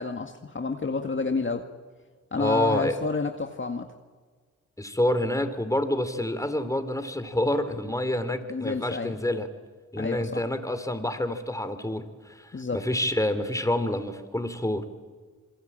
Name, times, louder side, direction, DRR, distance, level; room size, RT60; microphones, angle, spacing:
voice 1, 0.0-1.6 2.3-3.9 8.5-9.2 10.0-10.4 12.5-12.8, left 4 dB, 40° left, 4 dB, 2.0 m, -29 dB
voice 2, 2.4-3.0 4.8-9.5 9.9-14.8, left 1 dB, 10° left, 9 dB, 3.7 m, -28 dB
27.5 x 22.0 x 9.0 m, 1.5 s
cardioid pair, 55°, 31 cm